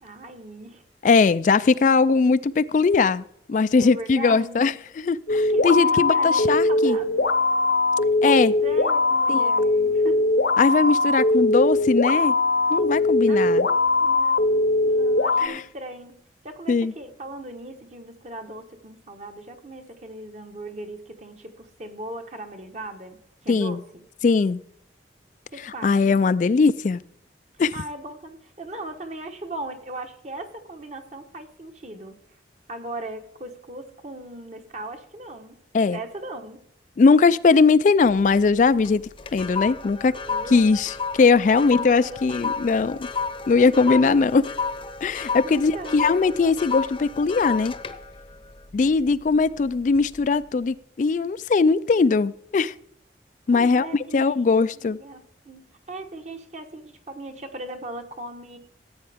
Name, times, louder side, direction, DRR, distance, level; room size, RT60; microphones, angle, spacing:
voice 1, 0.0-0.8 3.7-4.7 5.5-7.3 8.3-10.2 13.3-13.7 14.0-16.1 16.4-24.0 25.5-26.2 27.7-32.2 32.7-35.6 35.9-36.6 40.3-40.7 41.5-42.5 43.6-44.2 45.4-46.0 53.5-54.5 54.8-58.6, right 1 dB, 40° right, 1.2 m, -38 dB
voice 2, 1.0-3.2 3.5-7.0 8.2-8.5 9.3-9.5 10.6-12.4 12.7-13.7 15.4-15.6 16.7-16.9 23.5-23.8 24.2-24.6 25.6-27.0 27.6-27.7 35.7-36.0 37.0-39.0 39.3-40.2 40.5-43.1 43.5-44.4 45.0-47.7 48.7-52.7 53.5-55.0, left 4 dB, 45° left, 0.3 m, -20 dB
sound 1, 5.3-15.5, left 2 dB, 65° left, 0.8 m, -21 dB
sound 2, 38.0-38.5 38.8-49.4 49.9-50.2, left 5 dB, 30° left, 0.7 m, -32 dB
14.5 x 8.7 x 3.5 m
head